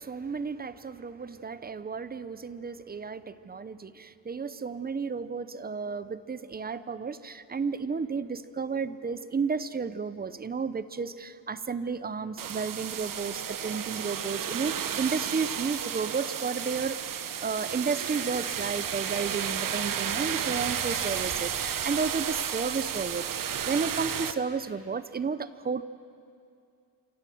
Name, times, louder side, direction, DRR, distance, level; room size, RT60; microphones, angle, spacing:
voice 1, 0.0-17.0 17.4-25.8, right 5 dB, 20° right, 14 dB, 0.7 m, -32 dB
sound 1, 12.4-24.3, right 8 dB, 50° right, 1.1 m, -32 dB
28.0 x 26.0 x 7.8 m, 2.4 s
cardioid pair, 150°, 43 cm